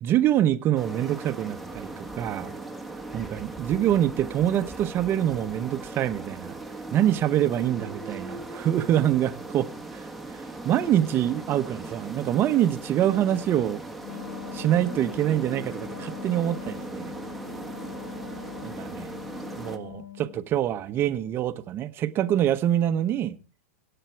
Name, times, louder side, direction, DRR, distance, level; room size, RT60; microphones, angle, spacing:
voice 1, 0.0-2.5 3.1-6.5 6.9-9.7 9.9-13.8 14.5-17.1 18.6-19.1 19.5-23.4, right 11 dB, 30° right, 1.1 m, -25 dB
sound 1, 0.8-19.8, right 2 dB, ahead, 1.4 m, -39 dB
Wind instrument woodwind instrument, 14.0-20.5, left 12 dB, 85° left, 1.6 m, -42 dB
23.0 x 9.0 x 4.6 m
supercardioid pair, 140°, 8 cm